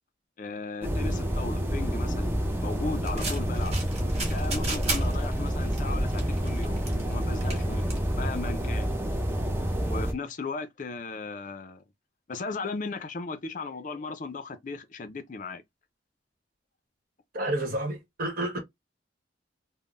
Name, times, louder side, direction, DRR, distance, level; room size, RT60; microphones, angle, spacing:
voice 1, 0.4-2.3 2.6-3.7 4.3-8.9 9.8-11.8 12.3-15.6, left 4 dB, 45° left, 0.5 m, -36 dB
sound 1, 0.8-10.1, equal, 15° right, 0.6 m, -28 dB
sound 2, 3.0-8.9, right 2 dB, 35° right, 1.4 m, -36 dB
voice 2, 17.3-18.6, right 1 dB, 50° right, 1.2 m, -30 dB
3.6 x 2.1 x 2.4 m
head